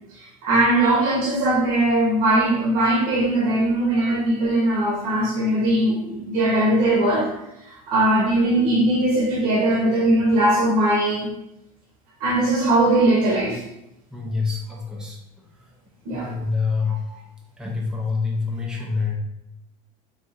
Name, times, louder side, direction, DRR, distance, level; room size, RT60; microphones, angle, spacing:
voice 1, 0.2-7.3 7.6-11.3 12.2-13.6 16.0-16.3 16.8-17.2, right 1 dB, 55° right, -5 dB, 0.9 m, -20 dB
voice 2, 14.1-15.2 16.1-17.0 17.6-19.1, left 4 dB, 5° right, -1 dB, 0.4 m, -26 dB
4.1 x 2.4 x 2.4 m, 0.84 s
cardioid pair, 165°, 19 cm